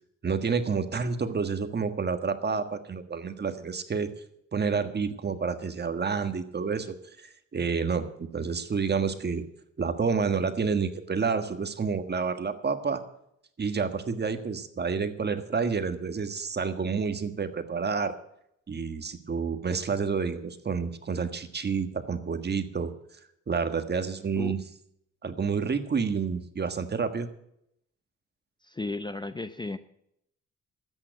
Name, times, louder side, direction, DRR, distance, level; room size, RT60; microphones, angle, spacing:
voice 1, 0.2-4.1 4.5-9.4 9.8-13.0 13.6-18.1 18.7-22.9 23.5-24.6 25.2-27.3, right 5 dB, 35° right, 8 dB, 1.6 m, -29 dB
voice 2, 28.7-29.8, left 2 dB, 15° left, 11 dB, 0.7 m, -34 dB
13.0 x 9.1 x 8.1 m, 0.76 s
cardioid pair, 90°, 30 cm